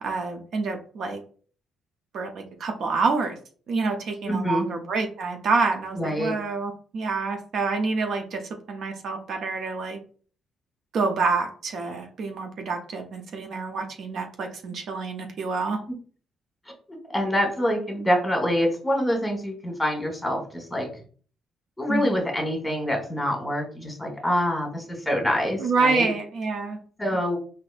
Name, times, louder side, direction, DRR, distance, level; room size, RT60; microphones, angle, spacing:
voice 1, 0.0-1.2 2.1-3.4 3.7-8.4 8.7-10.0 10.9-15.8 21.9-22.1 25.6-26.8, right 4 dB, 65° right, 4 dB, 0.5 m, -27 dB
voice 2, 4.2-4.6 5.9-6.3 15.9-16.0 17.0-20.9 21.8-26.1 27.0-27.4, equal, 10° left, 2 dB, 1.3 m, -25 dB
4.1 x 2.6 x 2.5 m, 0.43 s
cardioid pair, 90°, 0 cm